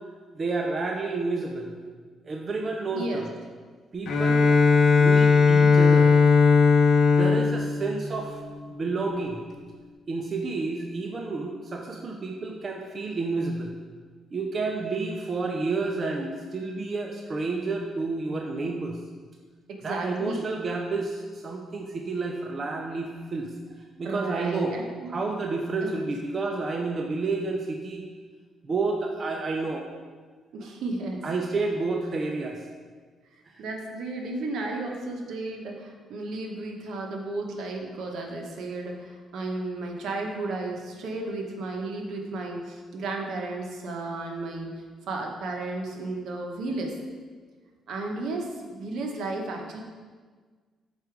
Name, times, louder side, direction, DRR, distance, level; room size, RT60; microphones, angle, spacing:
voice 1, 0.3-1.8 2.2-3.3 3.9-6.1 7.1-8.4 8.7-9.4 10.1-13.7 14.3-19.0 19.8-23.5 24.0-24.8 25.0-28.1 28.6-29.9 31.2-32.6 33.6-33.7, right 3 dB, 40° right, 2 dB, 0.7 m, -30 dB
voice 2, 2.9-3.3 19.7-20.5 24.0-25.1 25.8-26.0 30.5-31.2 33.6-44.7 45.1-46.9 47.9-49.8, right 2 dB, 75° right, 2 dB, 1.1 m, -33 dB
Bowed string instrument, 4.1-8.8, left 5 dB, 60° left, 1.0 m, -19 dB
6.5 x 4.8 x 4.7 m, 1.5 s
cardioid pair, 90°, 0 cm